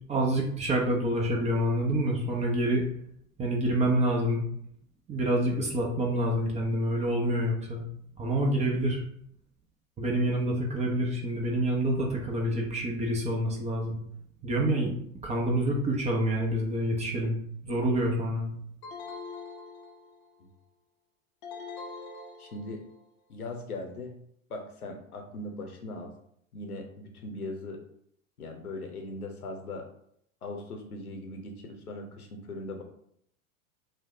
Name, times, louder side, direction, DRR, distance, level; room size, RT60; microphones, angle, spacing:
voice 1, 0.1-2.8 3.4-4.5 5.1-7.8 8.2-9.0 10.0-14.0 14.4-14.9 15.2-17.4 17.6-18.5, right 1 dB, 15° right, -1 dB, 0.6 m, -27 dB
sound 1, 18.8-20.4 21.4-23.0, left 4 dB, 35° left, 0.5 m, -43 dB
voice 2, 22.4-22.8 23.3-24.1 24.5-26.1 26.5-27.8 28.4-29.9 30.4-32.8, left 2 dB, 85° left, 3 dB, 0.8 m, -39 dB
2.7 x 2.2 x 3.8 m, 0.68 s
figure-of-eight pair, 90°, 43 cm